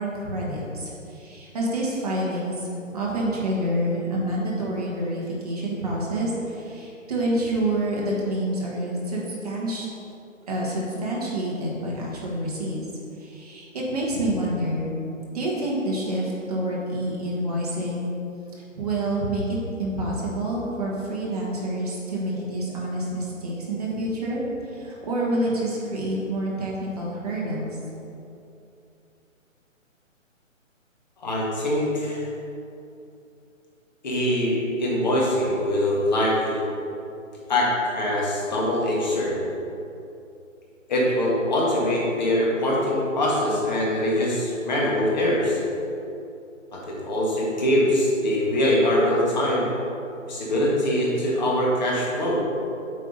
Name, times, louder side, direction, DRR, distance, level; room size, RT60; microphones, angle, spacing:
voice 1, 0.0-2.7 2.9-9.9 10.5-12.8 13.2-14.9 15.3-18.1 18.7-27.8, right 1 dB, 30° right, -5 dB, 1.4 m, -28 dB
voice 2, 31.2-32.2 34.0-36.6 37.5-39.4 40.9-45.6 46.7-49.7 50.3-52.4, left 1 dB, 35° left, -4 dB, 1.6 m, -23 dB
8.1 x 4.6 x 5.4 m, 2.7 s
hypercardioid pair, 170°, 40 cm